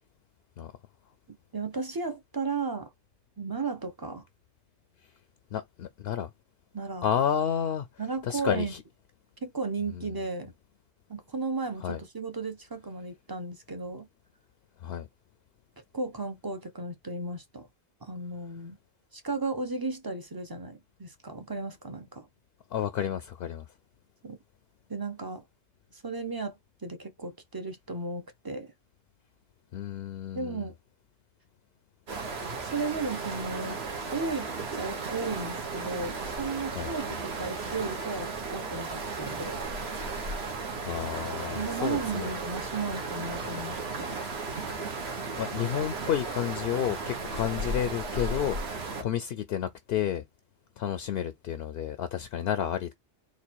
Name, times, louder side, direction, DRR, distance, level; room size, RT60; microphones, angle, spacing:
voice 1, 1.5-2.9 3.4-4.3 6.7-7.1 8.0-8.7 9.4-10.5 11.1-14.1 15.9-17.7 18.0-18.8 19.1-22.3 24.2-24.4 24.9-25.4 25.9-28.7 30.3-30.7 32.6-33.8 34.1-39.6 41.5-44.2, right 3 dB, 25° right, 0.7 m, -35 dB
voice 2, 5.5-6.3 7.0-7.9 8.2-8.8 9.9-10.1 11.8-12.0 14.8-15.1 22.7-23.7 29.7-30.7 36.7-36.9 40.8-42.3 45.3-50.2 50.8-52.9, left 9 dB, 65° left, 0.7 m, -31 dB
sound 1, 32.1-49.0, right 3 dB, 65° right, 1.4 m, -35 dB
4.0 x 2.5 x 4.4 m
omnidirectional pair, 1.1 m